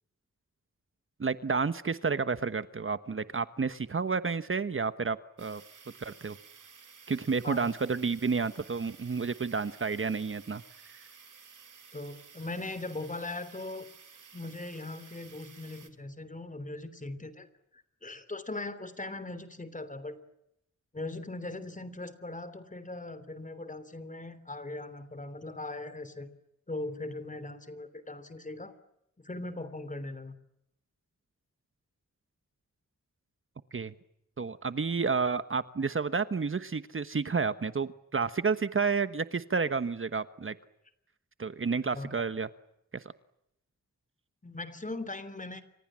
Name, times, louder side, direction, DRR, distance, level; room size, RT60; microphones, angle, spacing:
voice 1, 1.2-5.6 6.0-6.4 7.1-10.6 33.7-33.9 34.4-40.5 41.4-42.5 42.9-43.0, right 5 dB, 45° right, 13 dB, 1.2 m, -30 dB
sound 1, 5.4-15.9, right 6 dB, 85° right, 3.4 m, -54 dB
voice 2, 11.9-13.9 14.3-17.5 17.7-20.2 20.9-26.3 26.7-28.7 29.2-30.3 41.9-42.1 44.4-45.6, left 2 dB, 25° left, 13 dB, 3.2 m, -39 dB
29.5 x 26.5 x 7.5 m, 0.81 s
wide cardioid pair, 120°, 30 cm